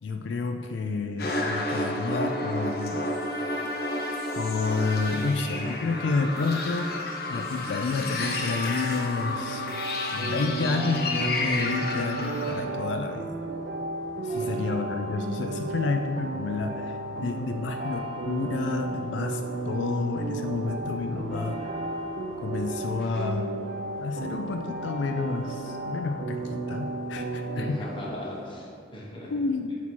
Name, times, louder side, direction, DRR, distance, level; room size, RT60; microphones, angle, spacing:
voice 1, 0.0-3.1 4.3-9.7 10.1-13.3 14.2-21.7 22.4-23.5 24.0-27.9 29.3-29.9, left 4 dB, 85° left, 6 dB, 0.3 m, -30 dB
sound 1, 1.2-12.6, left 2 dB, 55° left, 0.7 m, -31 dB
sound 2, 8.2-27.7, right 2 dB, 55° right, 0.5 m, -34 dB
sound 3, 10.1-28.5, equal, 5° left, 1.2 m, -45 dB
voice 2, 27.6-29.3, left 1 dB, 25° left, -4 dB, 1.1 m, -38 dB
8.1 x 3.0 x 4.3 m, 2.5 s
head